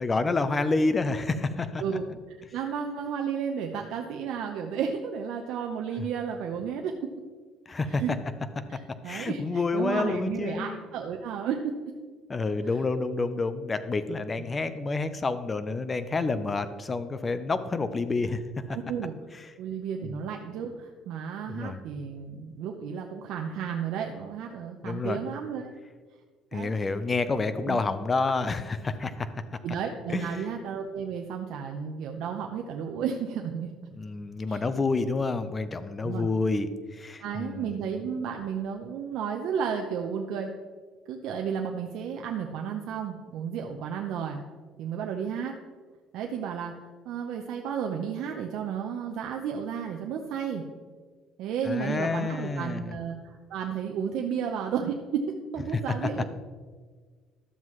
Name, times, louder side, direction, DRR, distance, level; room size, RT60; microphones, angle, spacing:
voice 1, 0.0-1.8 6.0-6.1 7.7-8.0 9.0-10.8 12.3-18.4 18.7-18.8 20.0-20.2 21.5-21.8 24.8-25.2 26.5-29.4 30.1-30.4 33.9-37.8 51.6-53.0 55.7-55.9, left 3 dB, 20° left, 11 dB, 0.6 m, -29 dB
voice 2, 1.8-6.9 7.9-8.1 8.7-11.7 12.6-12.8 18.7-19.1 19.6-25.7 26.5-26.7 27.7-27.8 29.6-33.7 34.5-34.6 36.0-36.3 37.2-40.5 41.1-44.4 44.8-45.5 46.1-46.7 47.1-50.6 51.4-56.2, right 7 dB, 65° right, 2 dB, 0.7 m, -33 dB
12.5 x 7.4 x 3.1 m, 1.5 s
cardioid pair, 135°, 0 cm